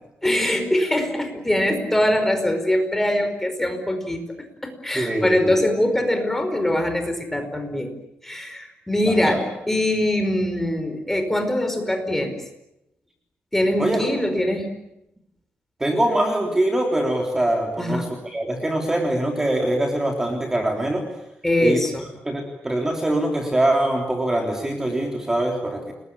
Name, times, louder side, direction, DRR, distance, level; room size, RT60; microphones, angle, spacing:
voice 1, 0.2-4.2 4.6-7.9 8.2-12.4 13.5-14.7 17.8-18.1 21.4-22.1, left 1 dB, 10° left, 7 dB, 5.0 m, -22 dB
voice 2, 4.9-5.6 9.1-9.4 13.8-14.0 15.8-21.1 21.6-21.8 22.2-25.9, right 1 dB, 15° right, 2 dB, 3.5 m, -23 dB
30.0 x 21.5 x 8.6 m, 0.84 s
wide cardioid pair, 135°, 4 cm